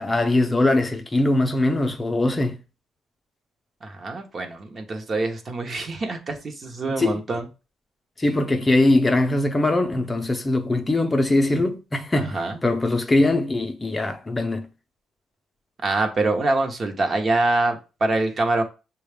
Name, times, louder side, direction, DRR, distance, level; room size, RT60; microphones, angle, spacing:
voice 1, 0.0-2.6 6.9-7.2 8.2-14.7, left 2 dB, 20° left, 0.6 m, -21 dB
voice 2, 3.8-7.5 12.1-12.6 15.8-18.6, right 2 dB, 40° right, 0.9 m, -25 dB
6.4 x 2.3 x 3.4 m
cardioid pair, 90°, 0 cm